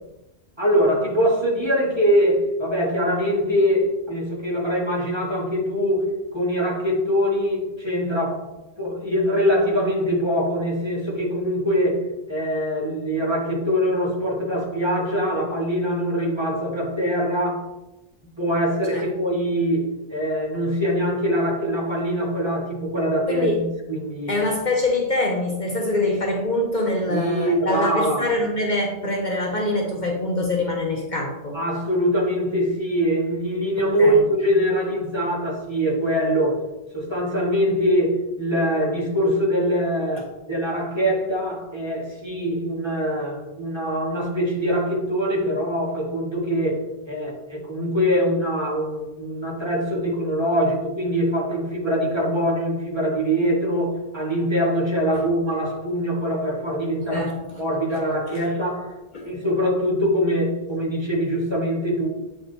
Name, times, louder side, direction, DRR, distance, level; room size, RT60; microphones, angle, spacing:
voice 1, 0.6-8.5 8.8-17.6 18.4-24.3 27.1-28.4 31.5-36.6 36.9-57.3 57.6-58.9 59.2-62.1, equal, 25° right, -4 dB, 1.7 m, -23 dB
voice 2, 23.3-23.6 24.3-31.6 34.0-34.2 55.1-55.2 57.1-57.4 58.3-58.4 59.1-59.3, left 2 dB, 45° left, 0 dB, 0.9 m, -24 dB
8.7 x 3.8 x 4.0 m, 0.99 s
omnidirectional pair, 1.1 m